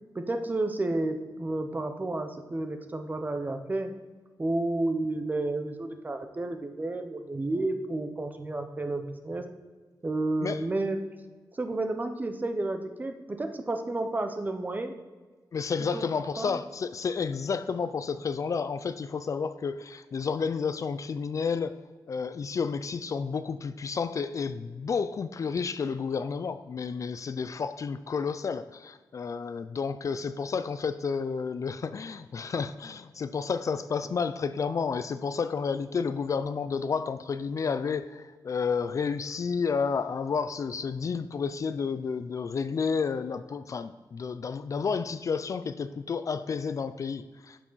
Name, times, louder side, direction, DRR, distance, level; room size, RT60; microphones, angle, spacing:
voice 1, 0.1-3.9 4.4-9.5 10.0-11.0 11.5-14.9 15.8-16.0 16.4-16.6, right 2 dB, 25° right, 7 dB, 0.8 m, -31 dB
voice 2, 15.5-21.7 22.1-47.6, left 5 dB, 50° left, 12 dB, 0.4 m, -31 dB
11.0 x 6.1 x 4.0 m, 1.3 s
wide cardioid pair, 150°, 7 cm